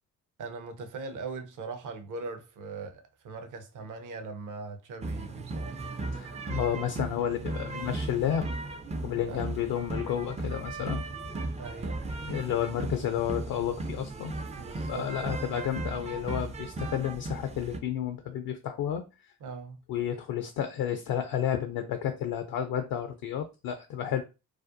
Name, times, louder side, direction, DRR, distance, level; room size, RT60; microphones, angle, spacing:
voice 1, 0.4-5.8 9.2-9.5 11.6-12.1 14.5-15.3 19.4-19.8, right 4 dB, 50° right, 0.7 m, -40 dB
sound 1, 5.0-17.8, right 2 dB, 20° right, 0.4 m, -36 dB
voice 2, 6.1-8.4 9.0-11.0 12.3-14.3 14.9-19.3 19.9-24.2, left 9 dB, 60° left, 0.5 m, -31 dB
2.4 x 2.1 x 2.5 m
hypercardioid pair, 45°, 40 cm